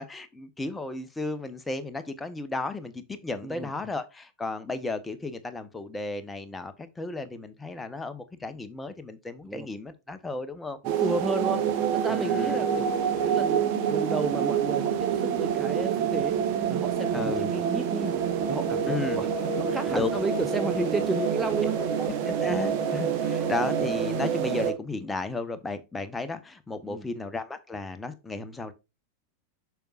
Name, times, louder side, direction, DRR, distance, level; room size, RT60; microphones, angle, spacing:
voice 1, 0.0-10.8 12.1-12.6 17.1-17.5 18.8-19.2 19.9-20.1 22.0-28.7, left 3 dB, 10° left, 0.9 m, -34 dB
sound 1, 10.8-24.7, right 7 dB, 45° right, 1.3 m, -27 dB
voice 2, 11.0-11.6 11.9-12.9 13.2-16.3 16.7-18.1 18.5-19.3 19.6-21.7 26.8-27.0, right 3 dB, 10° right, 0.6 m, -32 dB
6.9 x 6.2 x 2.4 m
figure-of-eight pair, 90°, 0 cm